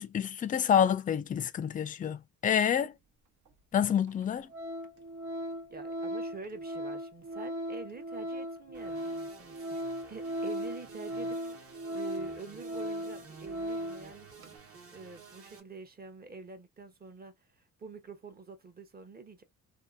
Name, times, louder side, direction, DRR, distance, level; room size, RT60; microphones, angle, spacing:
voice 1, 0.0-2.9 3.7-4.5, left 8 dB, 25° left, 0.4 m, -28 dB
Organ, 3.5-3.6 4.1-4.2 4.5-14.1 14.4-14.6, equal, 70° right, 0.9 m, -37 dB
voice 2, 5.7-9.8 10.1-14.5 14.9-19.4, right 4 dB, 30° right, 0.8 m, -47 dB
sound 1, 8.7-15.6, right 5 dB, 50° right, 1.2 m, -53 dB
2.7 x 2.5 x 2.3 m
cardioid pair, 90°, 30 cm